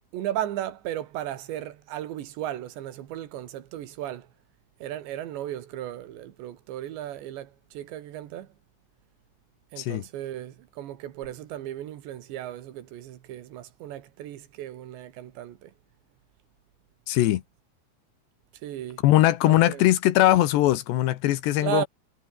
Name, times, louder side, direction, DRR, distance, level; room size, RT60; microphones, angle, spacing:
voice 1, 0.1-4.3 4.8-8.5 9.7-15.7 18.6-19.0 19.5-19.9 21.6-21.9, right 12 dB, 80° right, 4.1 m, -35 dB
voice 2, 17.1-17.4 19.0-21.9, left 14 dB, 80° left, 3.3 m, -20 dB
omnidirectional pair, 5.0 m